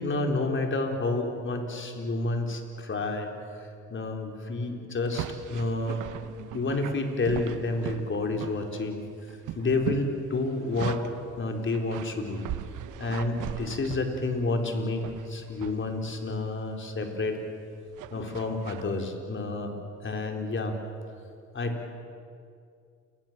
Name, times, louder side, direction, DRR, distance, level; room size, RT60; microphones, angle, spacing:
voice 1, 0.0-3.3 3.9-6.0 6.5-9.0 9.3-11.0 11.4-12.4 13.0-17.4 18.1-19.7 20.0-20.7 21.5-21.8, left 2 dB, 40° left, 3 dB, 4.3 m, -29 dB
sound 1, 5.1-8.9 9.2-11.2 11.7-14.5 15.0-15.8 16.2-16.5 17.9-18.9, right 11 dB, 85° right, 1.1 m, -39 dB
29.5 x 21.5 x 7.6 m, 2.4 s
cardioid pair, 90°, 30 cm